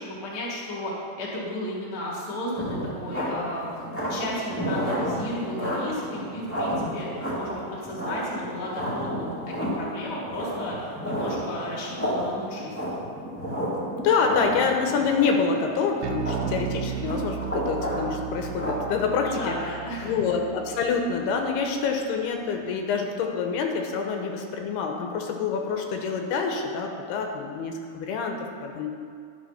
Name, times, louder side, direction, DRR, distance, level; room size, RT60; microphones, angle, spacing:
voice 1, 0.0-3.7 4.1-7.1 7.4-13.0 19.2-20.3, left 1 dB, 35° left, -6 dB, 2.1 m, -34 dB
sound 1, 2.6-18.7, equal, 10° left, 0.8 m, -31 dB
voice 2, 14.0-19.6 20.0-28.9, left 5 dB, 85° left, 2 dB, 2.9 m, -26 dB
Bass guitar, 16.0-22.5, right 9 dB, 80° right, 2.3 m, -36 dB
11.5 x 6.8 x 5.7 m, 2.3 s
omnidirectional pair, 4.6 m